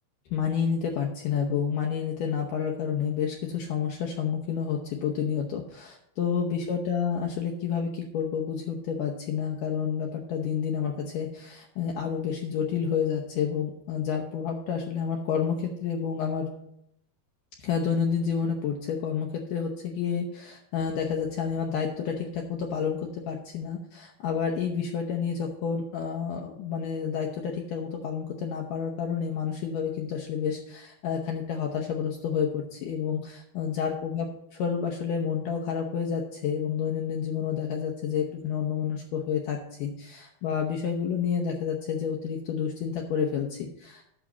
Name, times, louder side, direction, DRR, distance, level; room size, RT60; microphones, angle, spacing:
voice 1, 0.3-16.5 17.6-44.0, left 7 dB, 70° left, 1 dB, 2.2 m, -29 dB
8.8 x 6.4 x 7.2 m, 0.76 s
omnidirectional pair, 4.5 m